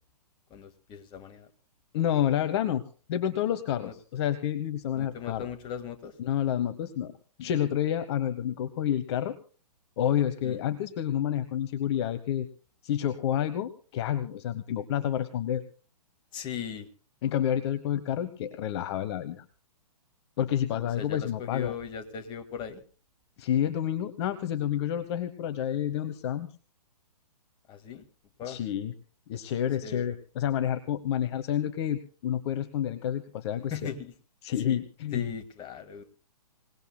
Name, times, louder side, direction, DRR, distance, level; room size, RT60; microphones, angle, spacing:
voice 1, 0.5-1.5 3.8-3.9 4.9-6.1 10.4-10.6 16.3-16.9 20.9-22.8 27.7-28.1 28.4-28.6 29.8-30.1 33.7-34.1 34.7-34.8 35.1-36.0, left 7 dB, 25° left, 7 dB, 1.8 m, -38 dB
voice 2, 1.9-2.8 3.1-5.5 6.2-7.1 7.4-9.4 10.0-12.5 12.8-15.6 17.2-19.4 20.4-21.7 23.4-26.5 28.5-28.9 29.3-33.7 34.4-35.3, left 10 dB, 40° left, 11 dB, 1.1 m, -29 dB
27.0 x 19.0 x 2.2 m, 0.39 s
figure-of-eight pair, 125°, 21 cm